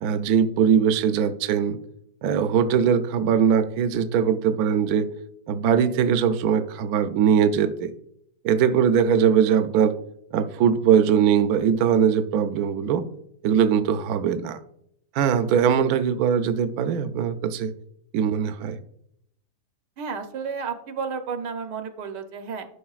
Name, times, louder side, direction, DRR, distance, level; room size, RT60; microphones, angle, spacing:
voice 1, 0.0-1.8 2.2-5.1 5.5-7.9 8.4-10.0 10.3-13.0 13.4-14.6 15.1-17.7 18.1-18.8, right 8 dB, 70° right, 9 dB, 1.0 m, -21 dB
voice 2, 20.0-22.7, right 5 dB, 90° right, 7 dB, 1.4 m, -32 dB
11.5 x 5.0 x 2.4 m, 0.73 s
omnidirectional pair, 1.8 m